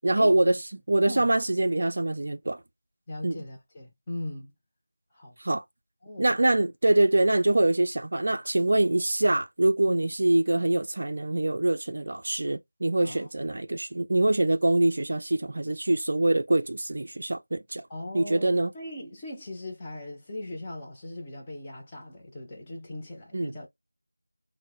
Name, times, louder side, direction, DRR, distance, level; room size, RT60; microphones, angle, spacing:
voice 1, 0.0-0.6 0.9-2.6 3.2-3.4 5.4-5.6 6.2-17.8 18.1-18.7 23.3-23.5, right 2 dB, 45° right, 0.4 m, -24 dB
voice 2, 3.1-4.5 5.1-5.4 6.0-6.3 9.9-10.1 13.0-13.3 17.9-23.7, left 1 dB, 15° left, 0.6 m, -39 dB
2.7 x 2.0 x 3.4 m
figure-of-eight pair, 170°, 0 cm